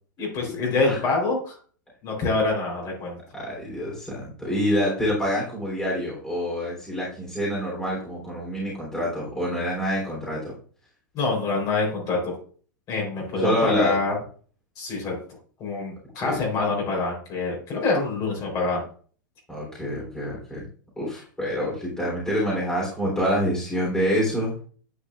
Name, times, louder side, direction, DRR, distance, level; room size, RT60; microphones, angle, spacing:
voice 1, 0.2-1.6 2.0-3.2 11.1-12.3 12.9-14.1 14.8-15.1 15.6-18.8, left 3 dB, 35° left, -1 dB, 3.8 m, -25 dB
voice 2, 3.3-10.5 13.3-14.0 16.2-16.4 19.5-20.7 21.0-24.5, equal, 5° left, -5 dB, 3.3 m, -26 dB
9.8 x 5.5 x 2.4 m, 0.43 s
hypercardioid pair, 120°, 11 cm